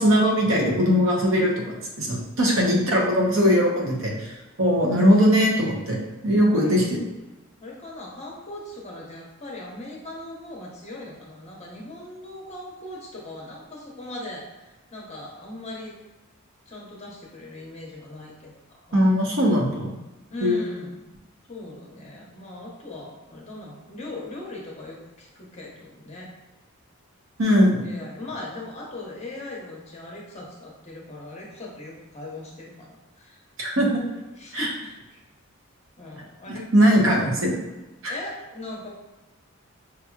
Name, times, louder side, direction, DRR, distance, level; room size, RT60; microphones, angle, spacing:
voice 1, 0.0-6.0 6.2-7.0 18.9-19.9 20.4-20.7 27.4-27.9 33.6-34.0 34.5-34.7 36.5-37.6 38.0-38.1, equal, 65° right, -2 dB, 0.9 m, -20 dB
voice 2, 7.6-16.0 16.7-19.1 20.3-21.0 21.5-26.3 27.7-33.4 34.4-34.7 35.1-35.2 36.0-36.7 37.0-37.3 38.1-38.9, left 2 dB, 30° left, -3 dB, 0.9 m, -39 dB
5.6 x 2.8 x 2.4 m, 1.0 s
head